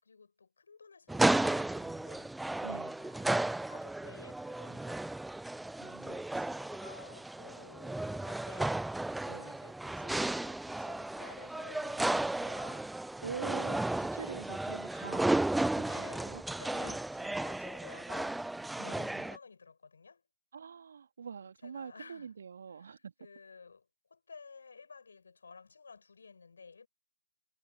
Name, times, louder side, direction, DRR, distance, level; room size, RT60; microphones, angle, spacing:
voice 1, 0.0-2.3 3.0-5.0 5.8-8.8 9.2-12.9 15.9-20.2 21.6-22.3 22.7-26.9, left 5 dB, 70° left, 6.8 m, -54 dB
sound 1, 1.1-19.4, right 2 dB, 5° right, 0.5 m, -34 dB
voice 2, 2.6-3.0 5.8-6.2 9.3-9.6 13.2-15.3 15.7-16.4 16.8-17.0 18.8-19.4 20.5-23.1, right 6 dB, 60° right, 2.3 m, -45 dB
figure-of-eight pair, 140°, 0 cm